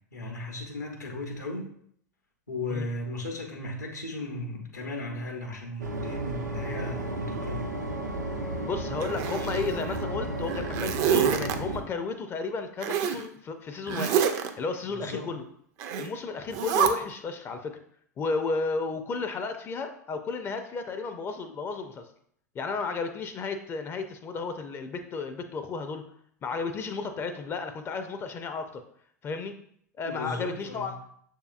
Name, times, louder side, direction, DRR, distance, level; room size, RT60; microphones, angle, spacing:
voice 1, 0.1-1.7 2.5-7.7 14.9-15.3 30.0-30.9, left 2 dB, 85° left, 1 dB, 0.9 m, -36 dB
sound 1, 5.8-11.8, right 1 dB, 85° right, 0.7 m, -33 dB
voice 2, 8.6-15.4 16.0-17.8 18.2-22.1 22.5-26.1 26.4-28.8 29.2-29.6 30.0-31.0, left 4 dB, 25° left, 8 dB, 0.5 m, -33 dB
Zipper (clothing), 9.0-10.0 10.4-11.6 12.8-13.2 13.9-14.5 15.8-16.1 16.5-16.9, right 8 dB, 40° right, 0.4 m, -27 dB
6.6 x 2.8 x 2.4 m, 0.65 s
figure-of-eight pair, 90°, 9 cm